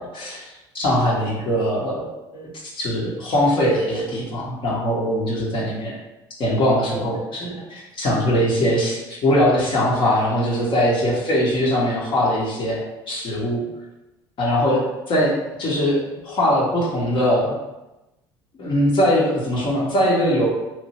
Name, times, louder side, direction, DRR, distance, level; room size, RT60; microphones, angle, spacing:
voice 1, 0.0-6.0 6.4-12.8 13.1-13.6 14.4-14.8 15.1-17.5 18.6-20.5, equal, 45° left, -4 dB, 1.0 m, -21 dB
2.9 x 2.6 x 3.0 m, 1.0 s
hypercardioid pair, 65°, 12 cm